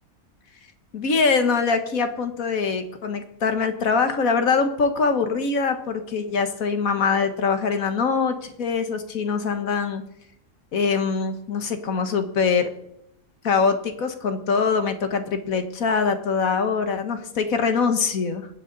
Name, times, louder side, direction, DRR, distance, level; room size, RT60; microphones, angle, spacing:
voice 1, 0.9-10.0 10.7-12.7 13.4-18.5, left 5 dB, 75° left, 7 dB, 1.7 m, -23 dB
22.0 x 9.3 x 4.0 m, 0.76 s
omnidirectional pair, 1.5 m